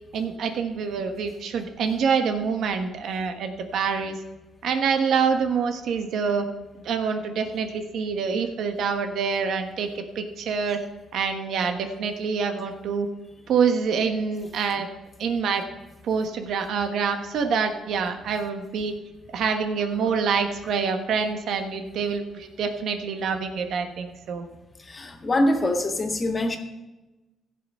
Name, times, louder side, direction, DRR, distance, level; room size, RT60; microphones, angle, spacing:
voice 1, 0.1-4.2 4.6-6.5 6.8-10.8 11.1-13.1 13.5-14.9 15.2-15.6 16.0-19.0 19.3-24.5, right 6 dB, 75° right, 6 dB, 1.3 m, -26 dB
voice 2, 24.8-26.6, left 1 dB, 30° left, 4 dB, 1.8 m, -24 dB
16.0 x 5.7 x 5.6 m, 1.1 s
cardioid pair, 90°, 0 cm